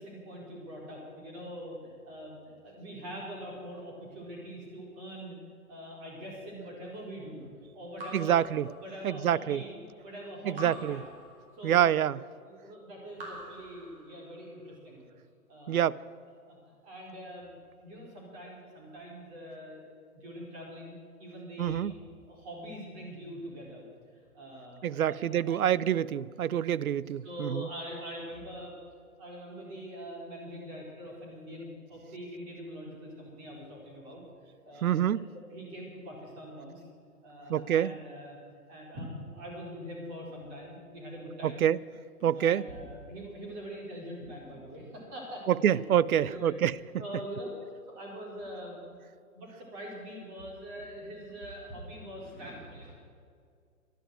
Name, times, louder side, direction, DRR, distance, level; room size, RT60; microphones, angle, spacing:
voice 1, 0.0-5.4 5.7-7.5 7.7-8.4 8.8-9.7 10.0-11.1 11.5-12.0 12.4-15.0 15.5-15.8 16.5-16.6 16.8-19.8 20.1-22.0 22.3-23.9 24.1-25.6 27.2-28.7 29.2-34.2 34.6-35.2 35.5-36.9 37.2-38.4 38.7-41.7 42.3-45.8 46.2-46.6 47.0-47.5 47.9-48.8 49.3-53.0, equal, 25° right, -2 dB, 4.6 m, -43 dB
Raindrop / Drip, 8.0-9.4 10.5-11.9 13.1-14.5, right 1 dB, 40° right, 4.3 m, -47 dB
voice 2, 8.1-8.7 9.0-9.6 10.4-11.0 11.6-12.2 15.7-16.0 21.6-21.9 24.8-27.7 34.8-35.3 37.5-37.9 41.4-41.8 42.2-42.6 45.5-46.7, right 10 dB, 70° right, 21 dB, 0.6 m, -26 dB
12.0 x 11.5 x 9.1 m, 2.2 s
hypercardioid pair, 155°, 45 cm